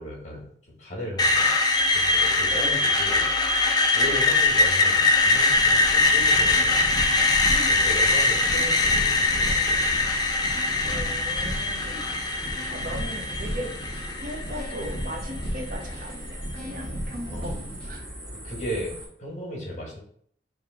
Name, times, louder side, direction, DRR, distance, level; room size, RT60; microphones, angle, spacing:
voice 1, 0.0-1.5 1.9-3.3 3.9-6.9 7.7-10.1 17.3-17.5 18.4-20.0, equal, 40° left, -2 dB, 1.4 m, -36 dB
Screech, 1.2-15.1, left 3 dB, 25° left, 0.4 m, -22 dB
sound 1, 3.2-19.1, equal, 20° right, 1.7 m, -41 dB
sound 2, 5.5-18.0, equal, 5° left, 1.3 m, -36 dB
voice 2, 10.8-12.1 12.7-13.7 14.1-18.0, equal, 50° right, 2 dB, 0.7 m, -38 dB
3.3 x 2.8 x 4.6 m, 0.62 s
head